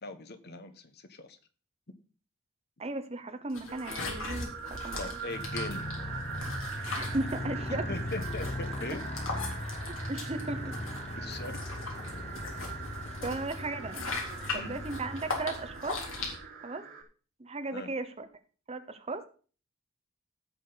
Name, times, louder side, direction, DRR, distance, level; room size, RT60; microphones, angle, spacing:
voice 1, 0.0-1.4 4.9-5.9 7.7-9.0 11.2-11.7 13.2-13.4 14.5-14.8 17.7-17.9, left 2 dB, 55° left, 9 dB, 1.2 m, -40 dB
voice 2, 2.8-5.2 6.9-7.9 10.1-10.8 13.2-14.1 14.5-16.0 16.6-16.9 17.4-18.3 18.7-19.3, right 2 dB, 30° right, 10 dB, 0.9 m, -36 dB
sound 1, 3.5-16.4, left 3 dB, 85° left, 3.3 m, -40 dB
sound 2, 3.7-17.0, right 6 dB, 55° right, 4.5 m, -43 dB
Motorcycle, 5.3-15.9, left 1 dB, 35° left, 0.9 m, -39 dB
16.0 x 6.5 x 4.0 m, 0.39 s
head